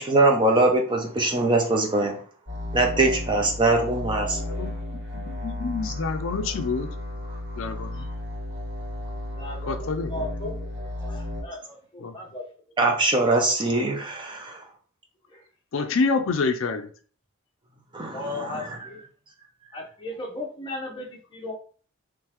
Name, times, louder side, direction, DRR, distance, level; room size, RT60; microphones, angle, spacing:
voice 1, 0.0-2.2 2.7-4.4 12.8-14.6 17.9-18.8, right 2 dB, 20° right, 2 dB, 0.5 m, -22 dB
sound 1, 2.5-11.4, left 1 dB, 65° right, 1.9 m, -33 dB
voice 2, 4.4-6.9 7.6-8.1 9.7-10.1 12.0-12.1 15.7-16.9, left 4 dB, 65° left, 7 dB, 0.4 m, -28 dB
voice 3, 9.3-10.7 11.0-12.4 15.3-15.4 18.1-19.0 19.7-21.5, left 2 dB, 25° left, -2 dB, 0.9 m, -36 dB
3.7 x 3.1 x 3.0 m, 0.43 s
head